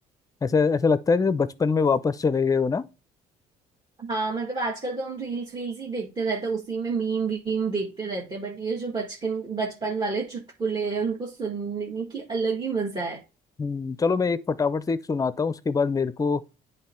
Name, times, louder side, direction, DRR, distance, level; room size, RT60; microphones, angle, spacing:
voice 1, 0.4-2.8 13.6-16.4, left 5 dB, 20° left, 0.5 m, -23 dB
voice 2, 4.0-13.2, right 4 dB, 25° right, 1.5 m, -29 dB
9.5 x 3.2 x 4.3 m
cardioid pair, 110°, 17 cm